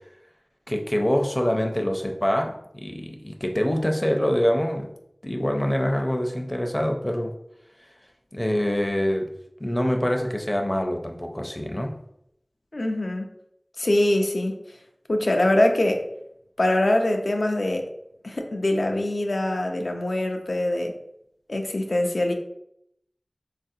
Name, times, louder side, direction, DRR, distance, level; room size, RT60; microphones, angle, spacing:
voice 1, 0.7-4.9 5.2-7.3 8.3-9.3 9.6-11.9, equal, 25° left, 3 dB, 0.5 m, -25 dB
voice 2, 12.7-13.3 13.8-14.6 15.1-16.0 16.6-17.9 18.2-20.9 21.5-22.3, left 1 dB, 80° left, 3 dB, 0.4 m, -23 dB
3.8 x 2.4 x 2.7 m, 0.77 s
wide cardioid pair, 40°, 0 cm